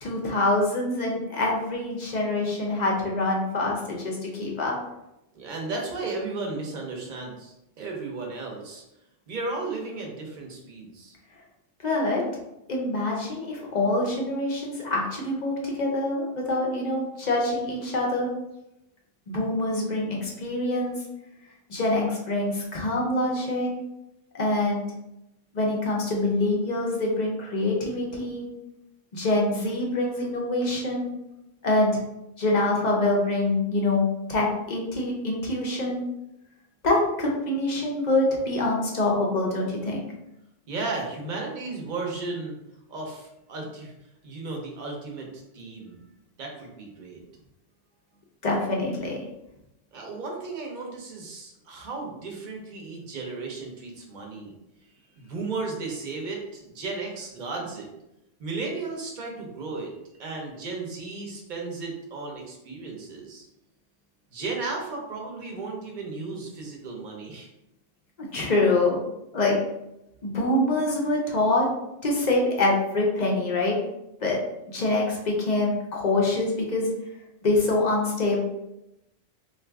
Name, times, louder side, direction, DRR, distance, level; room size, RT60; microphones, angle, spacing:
voice 1, 0.0-4.7 11.8-12.2 12.7-18.3 19.3-21.0 21.7-23.7 24.3-24.9 25.5-28.5 29.1-31.1 31.6-32.0 32.4-36.0 36.8-40.0 48.4-49.2 68.2-69.0 69.3-69.6 70.2-71.7 72.0-73.8 74.2-74.4 74.6-76.9 77.4-78.4, left 2 dB, 45° left, -2 dB, 0.6 m, -25 dB
voice 2, 5.3-8.8 9.3-11.1 40.7-42.6 42.9-43.9 44.2-46.0 46.4-47.2 49.9-54.5 54.8-57.9 58.4-63.5 64.3-67.5, right 3 dB, 50° right, 0 dB, 0.7 m, -35 dB
2.6 x 2.5 x 3.4 m, 0.89 s
omnidirectional pair, 1.2 m